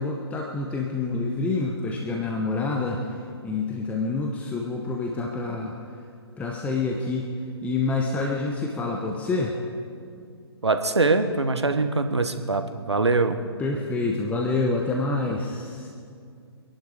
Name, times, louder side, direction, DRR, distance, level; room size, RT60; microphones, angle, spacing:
voice 1, 0.0-3.0 3.4-5.7 6.4-7.3 7.6-9.6 13.6-15.9, left 3 dB, 10° left, 0 dB, 1.1 m, -27 dB
voice 2, 10.6-13.4, right 3 dB, 85° right, 8 dB, 1.3 m, -23 dB
25.5 x 11.0 x 5.0 m, 2.3 s
figure-of-eight pair, 130°, 14 cm